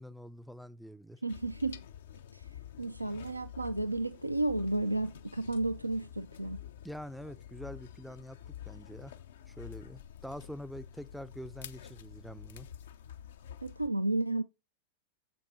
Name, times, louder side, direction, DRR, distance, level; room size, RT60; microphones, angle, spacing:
voice 1, 0.0-1.2 6.8-8.4 8.7-9.2 9.5-12.7, equal, ahead, 0.4 m, -45 dB
voice 2, 1.2-1.8 2.3-2.5 2.8-6.6 13.6-14.4, right 2 dB, 85° right, 0.4 m, -32 dB
sound 1, 1.3-13.9, left 9 dB, 60° left, 0.5 m, -48 dB
7.5 x 7.2 x 4.0 m
figure-of-eight pair, 90°, 0 cm